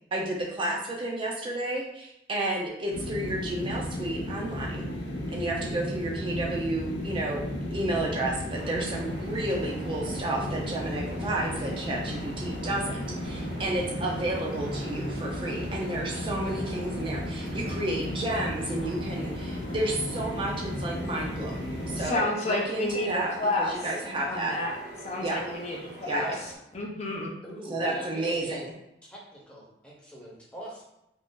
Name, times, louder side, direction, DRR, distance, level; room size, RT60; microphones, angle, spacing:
voice 1, 0.1-4.9 5.3-7.5 7.7-21.6 21.9-24.6 25.2-25.4 26.1-26.4 27.7-28.7, right 1 dB, 30° right, -2 dB, 0.4 m, -31 dB
sound 1, 2.9-22.1, left 1 dB, 85° left, 0.6 m, -34 dB
sound 2, 8.5-26.6, equal, 65° right, 0.7 m, -44 dB
voice 2, 22.0-23.7 24.3-24.8 25.0-26.3 26.7-27.3, left 2 dB, 35° left, -1 dB, 0.5 m, -30 dB
voice 3, 27.4-28.6 29.0-30.8, right 1 dB, 5° left, -5 dB, 0.8 m, -42 dB
2.6 x 2.3 x 3.6 m, 0.85 s
head